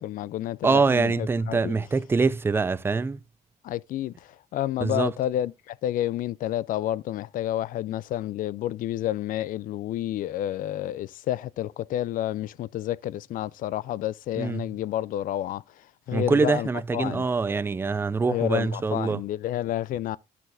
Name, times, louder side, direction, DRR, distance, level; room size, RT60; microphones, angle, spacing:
voice 1, 0.0-1.7 3.6-17.2 18.3-20.2, left 13 dB, 55° left, 0.4 m, -30 dB
voice 2, 0.6-3.2 4.8-5.1 14.4-14.7 16.1-19.2, right 4 dB, 15° right, 0.3 m, -24 dB
12.5 x 6.0 x 2.6 m
cardioid pair, 110°, 17 cm